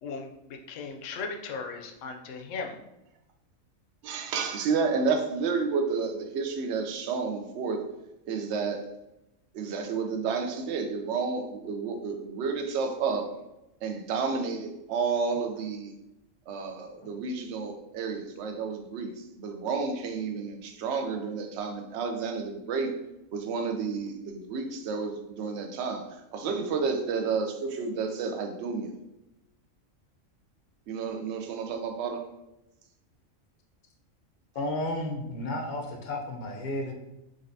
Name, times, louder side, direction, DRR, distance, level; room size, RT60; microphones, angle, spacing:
voice 1, 0.0-2.8, left 4 dB, 70° left, 3 dB, 0.9 m, -37 dB
voice 2, 4.0-7.9 8.3-8.8 9.5-13.3 13.8-15.9 16.5-22.9 23.3-28.9 30.9-32.2, right 5 dB, 65° right, 4 dB, 0.8 m, -31 dB
voice 3, 34.5-36.9, left 1 dB, 50° left, 1 dB, 0.6 m, -32 dB
4.0 x 3.1 x 2.6 m, 0.91 s
omnidirectional pair, 1.4 m